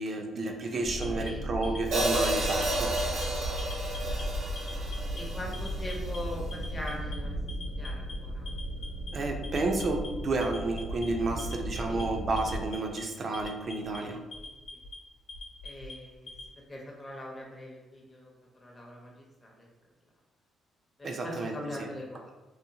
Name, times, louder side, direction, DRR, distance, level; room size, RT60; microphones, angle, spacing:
voice 1, 0.0-3.0 9.1-14.2 21.0-21.9, right 2 dB, 45° right, 3 dB, 0.4 m, -31 dB
voice 2, 0.6-1.8 2.2-3.3 4.1-4.3 5.1-7.4 7.7-8.5 11.3-11.4 11.9-12.0 14.0-14.5 15.6-16.3 16.7-18.3 18.6-19.7 21.0-22.3, left 1 dB, 20° left, -2 dB, 0.6 m, -42 dB
sound 1, 0.8-12.7, right 1 dB, 85° left, 0.5 m, -36 dB
Alarm, 1.0-2.3 2.6-3.2 3.6-4.2 4.6-5.2 5.5-6.2 6.5-7.1 7.5-8.1 8.5-9.1 9.4-10.1 10.4-11.1 11.4-12.0 12.4-13.0 13.3-14.0 14.3-15.0 15.3-16.5, left 3 dB, 65° left, 0.9 m, -44 dB
Hi-hat, 1.9-6.1, right 1 dB, 75° right, 0.7 m, -32 dB
2.7 x 2.0 x 2.7 m, 1.1 s
cardioid pair, 90°, 0 cm